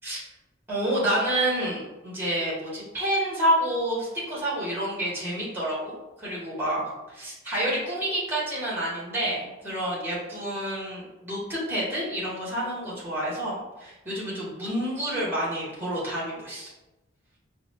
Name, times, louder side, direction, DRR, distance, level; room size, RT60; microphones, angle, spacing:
voice 1, 0.7-16.7, right 1 dB, 10° right, -7 dB, 1.3 m, -29 dB
4.7 x 2.1 x 3.4 m, 1.0 s
head